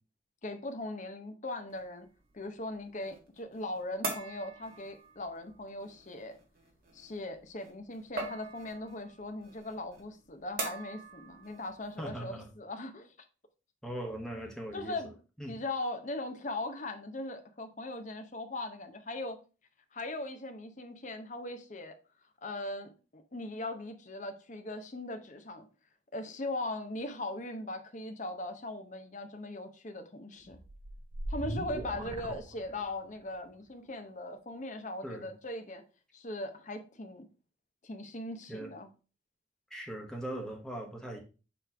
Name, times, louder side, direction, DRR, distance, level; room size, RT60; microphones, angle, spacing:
voice 1, 0.4-2.1 2.3-6.4 6.9-13.1 14.7-15.1 15.5-19.4 19.9-21.9 22.4-25.7 26.1-30.6 31.3-35.8 36.1-37.3 37.8-38.9, left 2 dB, 40° left, 0.8 m, -39 dB
sound 1, 1.7-12.5, right 3 dB, 45° right, 1.5 m, -44 dB
voice 2, 12.0-12.5 13.8-15.0 15.4-15.6 31.4-32.0 35.0-35.3 38.5-38.7 39.7-41.2, right 1 dB, 5° left, 1.1 m, -40 dB
sound 2, 30.5-33.2, right 1 dB, 25° right, 0.5 m, -40 dB
7.1 x 3.2 x 4.3 m
head